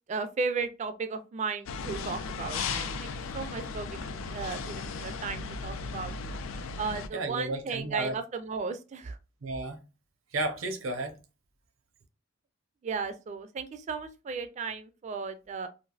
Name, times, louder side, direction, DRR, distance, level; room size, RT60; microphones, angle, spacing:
voice 1, 0.1-6.1 6.8-9.2 12.8-15.7, right 4 dB, 35° right, 0.3 m, -35 dB
sound 1, 1.7-7.1, left 4 dB, 80° left, 0.4 m, -36 dB
voice 2, 7.1-8.1 9.4-9.8 10.3-11.2, right 2 dB, 85° right, 0.7 m, -32 dB
3.3 x 2.4 x 2.3 m
head